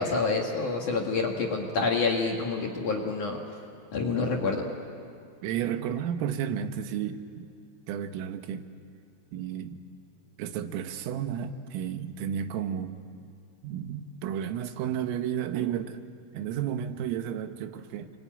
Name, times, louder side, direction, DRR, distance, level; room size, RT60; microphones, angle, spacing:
voice 1, 0.0-3.4 3.9-4.6, left 4 dB, 55° left, 0 dB, 2.4 m, -27 dB
voice 2, 5.4-7.5 7.9-8.7 9.3-9.8 10.4-13.0 13.6-16.0 16.3-18.1, right 9 dB, 85° right, 8 dB, 3.8 m, -32 dB
28.5 x 22.5 x 9.1 m, 2.4 s
omnidirectional pair, 5.8 m